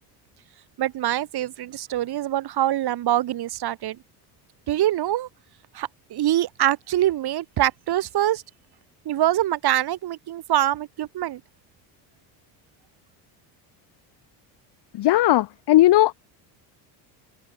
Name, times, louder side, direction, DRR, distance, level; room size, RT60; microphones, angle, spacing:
voice 1, 0.8-4.0 4.7-5.3 5.7-8.4 9.1-11.4, right 13 dB, 50° right, 1.9 m, -24 dB
voice 2, 14.9-16.1, left 15 dB, 55° left, 1.7 m, -17 dB
supercardioid pair, 90°, 48 cm